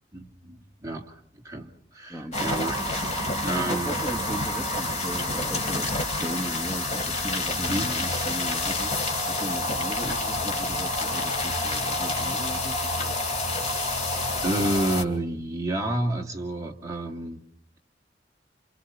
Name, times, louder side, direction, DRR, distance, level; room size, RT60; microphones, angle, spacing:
voice 1, 0.1-3.1 3.4-4.0 7.7-7.9 14.4-17.4, right 1 dB, 20° right, 0 dB, 2.4 m, -30 dB
sound 1, 2.3-15.0, left 2 dB, 40° left, 3.1 m, -28 dB
voice 2, 3.4-13.1, right 1 dB, ahead, -2 dB, 1.4 m, -37 dB
29.5 x 28.0 x 4.5 m, 0.62 s
head